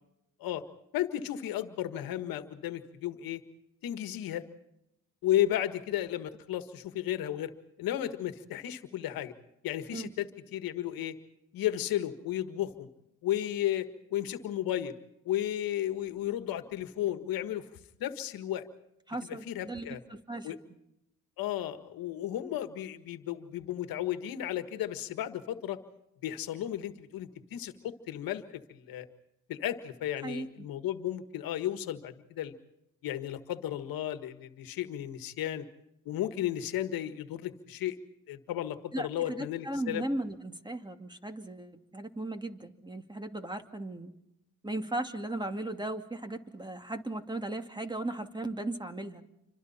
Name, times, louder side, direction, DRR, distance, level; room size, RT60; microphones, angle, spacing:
voice 1, 0.9-3.4 3.8-4.4 5.2-7.5 7.8-9.3 9.6-11.1 11.5-12.9 13.2-14.9 15.2-17.6 18.0-18.7 19.5-20.0 20.4-20.6 21.4-25.8 26.2-28.4 28.7-29.1 29.5-32.5 33.0-35.6 36.0-37.9 38.3-40.0, left 12 dB, 90° left, 10 dB, 1.6 m, -33 dB
voice 2, 19.1-20.5 30.2-30.5 38.9-44.1 44.6-49.2, right 2 dB, 15° right, 6 dB, 2.5 m, -37 dB
28.5 x 25.5 x 4.3 m, 0.84 s
supercardioid pair, 60°, 35 cm